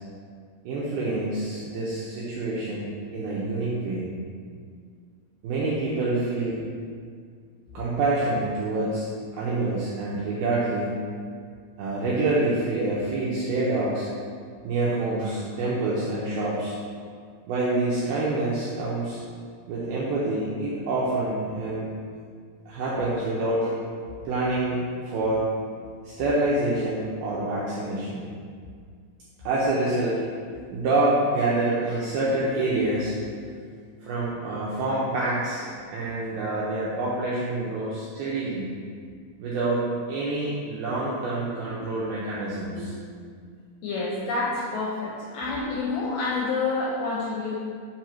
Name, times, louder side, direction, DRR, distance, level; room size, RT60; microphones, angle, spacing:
voice 1, 0.6-4.1 5.4-6.6 7.7-9.1 9.4-10.9 11.8-14.1 14.6-16.8 17.5-19.2 19.7-21.9 22.7-23.7 24.2-25.5 26.1-28.3 29.4-33.2 34.0-38.7 39.4-42.9, right 2 dB, 90° right, -7 dB, 2.2 m, -27 dB
voice 2, 43.8-47.6, left 3 dB, 80° left, -5 dB, 2.3 m, -28 dB
7.0 x 2.8 x 5.8 m, 2.1 s
omnidirectional pair, 5.3 m